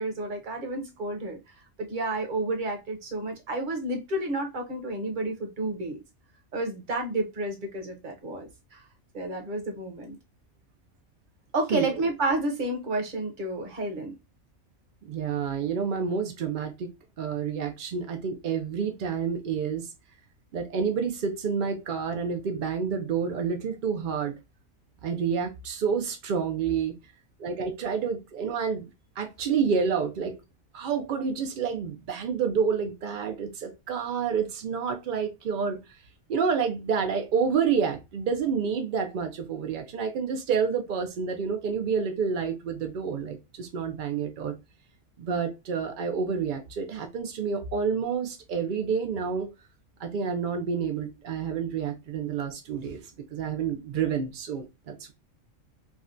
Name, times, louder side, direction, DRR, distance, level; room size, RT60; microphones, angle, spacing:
voice 1, 0.0-1.4 1.8-6.0 6.5-8.8 9.1-10.2 11.5-14.1, right 2 dB, 45° right, 0.8 m, -30 dB
voice 2, 15.0-16.9 17.2-19.9 20.5-24.3 25.0-26.9 27.4-28.9 29.2-30.3 30.7-35.8 36.3-44.6 45.2-49.5 50.0-53.0 53.3-55.1, right 6 dB, 75° right, 0.4 m, -29 dB
3.5 x 2.2 x 2.4 m
omnidirectional pair, 1.4 m